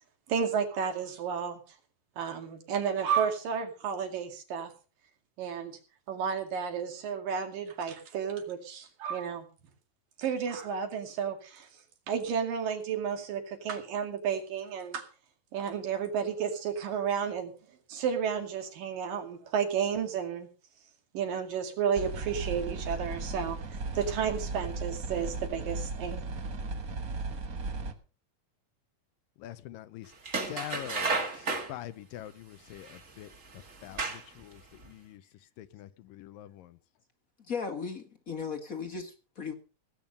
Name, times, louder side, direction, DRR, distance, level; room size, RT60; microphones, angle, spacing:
voice 1, 0.3-1.6 2.2-4.7 5.4-5.8 6.1-9.5 10.2-11.7 12.1-15.0 15.5-17.5 17.9-20.5 21.1-26.3, right 7 dB, 75° right, 4.0 m, -32 dB
sound 1, 22.0-27.9, right 3 dB, 55° right, 0.9 m, -36 dB
voice 2, 29.4-30.1 30.5-35.2 35.6-36.8, left 13 dB, 80° left, 2.5 m, -45 dB
sound 2, 30.2-31.7 32.9-33.0 33.7-34.4 34.8-34.9, right 3 dB, 30° right, 1.7 m, -32 dB
voice 3, 37.5-39.5, left 5 dB, 35° left, 1.4 m, -36 dB
18.0 x 9.0 x 5.3 m
omnidirectional pair, 4.0 m